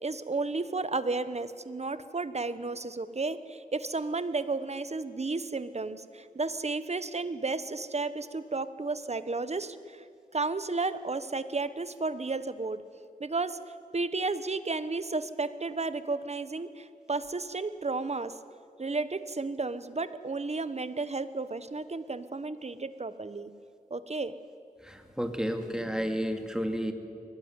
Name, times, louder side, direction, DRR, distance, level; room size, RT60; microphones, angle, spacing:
voice 1, 0.0-10.0 10.3-12.8 13.2-13.6 13.9-18.4 18.8-23.5 23.9-24.3, right 3 dB, 45° right, 13 dB, 1.1 m, -33 dB
voice 2, 24.8-26.9, equal, 5° right, 5 dB, 2.6 m, -31 dB
22.5 x 18.5 x 9.7 m, 2.5 s
wide cardioid pair, 65°, 15 cm